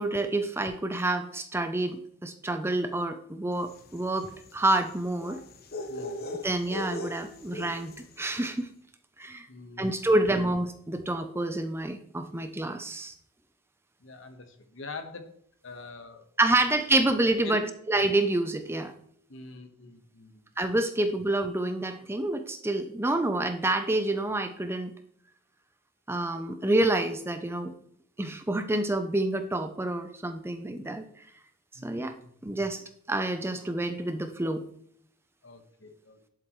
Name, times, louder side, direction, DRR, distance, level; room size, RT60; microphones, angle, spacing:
voice 1, 0.0-5.4 6.4-8.7 9.2-9.5 9.8-13.1 16.4-17.6 17.9-18.9 20.6-24.9 26.1-27.7 28.2-31.1 31.8-32.1 32.4-32.8 33.1-34.6, right 2 dB, 10° right, 8 dB, 0.5 m, -28 dB
sound 1, 3.6-8.2, left 1 dB, 45° left, 1.0 m, -39 dB
voice 2, 5.9-6.3 9.5-10.4 14.0-15.3 15.6-16.3 16.9-17.0 17.4-17.8 19.3-20.5 31.7-32.5 35.4-36.2, left 3 dB, 60° left, 7 dB, 1.3 m, -45 dB
11.5 x 7.9 x 3.1 m, 0.69 s
head